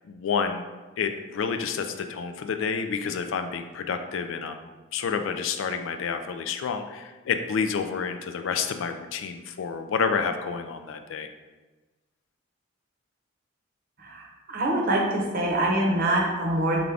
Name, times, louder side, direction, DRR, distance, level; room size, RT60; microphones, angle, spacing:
voice 1, 0.0-0.6 1.0-11.3, left 6 dB, 70° left, 7 dB, 0.3 m, -29 dB
voice 2, 14.0-16.8, right 1 dB, 45° right, 0 dB, 0.7 m, -25 dB
3.6 x 3.6 x 3.3 m, 1.2 s
head